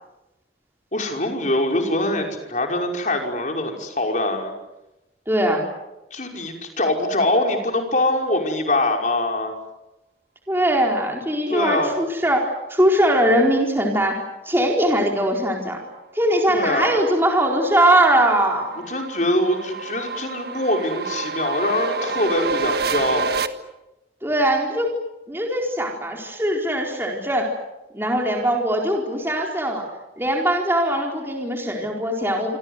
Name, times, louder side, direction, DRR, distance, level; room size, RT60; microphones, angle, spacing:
voice 1, 0.9-4.5 6.1-9.5 11.5-11.9 16.5-17.0 18.9-23.3, left 1 dB, 45° left, 2 dB, 5.6 m, -23 dB
voice 2, 5.3-5.6 10.5-15.8 16.1-18.8 24.2-24.9 25.3-27.5 27.9-29.8 30.2-32.6, right 1 dB, 15° right, 0 dB, 4.3 m, -21 dB
sound 1, 17.1-23.5, right 4 dB, 60° right, 1.6 m, -29 dB
27.5 x 26.0 x 8.1 m, 0.97 s
head